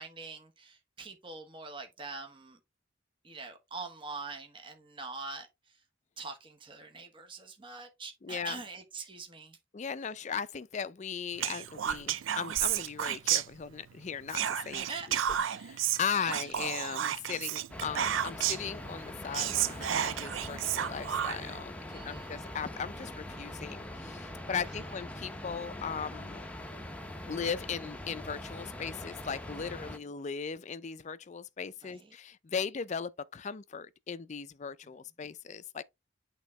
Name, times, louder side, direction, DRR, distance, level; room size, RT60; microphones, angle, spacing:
voice 1, 0.0-2.6 3.2-5.8 6.2-9.6 14.9-15.6 16.2-16.5 21.9-22.4 24.6-24.9 31.8-32.1, right 4 dB, 25° right, 1.1 m, -44 dB
voice 2, 8.2-8.6 9.7-15.2 15.6-26.5 27.2-35.8, left 6 dB, 40° left, 0.4 m, -38 dB
Whispering, 11.4-13.9 14.3-18.7 19.1-19.2 19.3-21.6, right 10 dB, 90° right, 0.4 m, -32 dB
sound 1, 17.7-30.0, left 1 dB, 5° left, 0.7 m, -43 dB
8.3 x 3.7 x 3.1 m
head